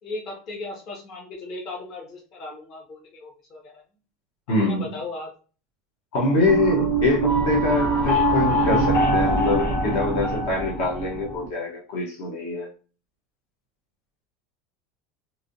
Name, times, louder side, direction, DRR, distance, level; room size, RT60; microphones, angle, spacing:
voice 1, 0.0-3.8 4.5-5.3, left 2 dB, 40° left, -1 dB, 0.8 m, -37 dB
voice 2, 4.5-4.9 6.1-12.7, left 2 dB, 70° left, 1 dB, 1.0 m, -24 dB
sound 1, 6.4-11.5, right 1 dB, 85° left, 1.3 m, -23 dB
3.2 x 2.7 x 2.6 m, 0.36 s
cardioid pair, 165°, 0 cm